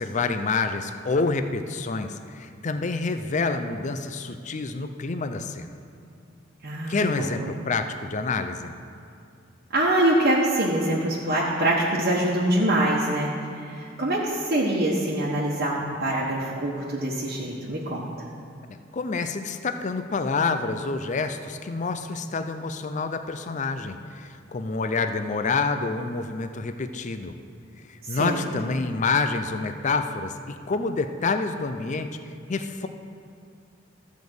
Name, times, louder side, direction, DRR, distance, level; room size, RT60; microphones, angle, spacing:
voice 1, 0.0-5.7 6.9-8.8 18.7-27.4 27.9-32.1 32.5-32.9, left 4 dB, 40° left, 8 dB, 0.5 m, -28 dB
voice 2, 6.6-7.3 9.7-13.3 13.7-18.0 28.0-28.4, right 1 dB, 50° right, -5 dB, 1.2 m, -24 dB
13.0 x 5.2 x 7.8 m, 2.3 s
head